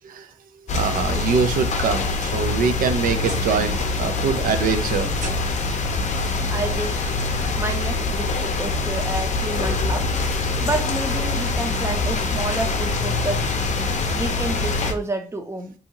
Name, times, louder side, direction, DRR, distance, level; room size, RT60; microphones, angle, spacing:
sound 1, 0.7-14.9, left 3 dB, 55° left, 0.5 m, -24 dB
voice 1, 0.7-5.1, right 6 dB, 85° right, 0.4 m, -23 dB
sound 2, 2.5-3.7 4.0-4.5 5.1-5.8 7.0-7.1 7.7-7.8 9.4-9.5, right 2 dB, 65° right, 0.8 m, -37 dB
voice 2, 6.5-7.2 7.6-10.2 10.6-13.5 14.1-15.7, right 2 dB, 20° right, 0.5 m, -29 dB
2.7 x 2.3 x 2.8 m
cardioid pair, 85°, 14 cm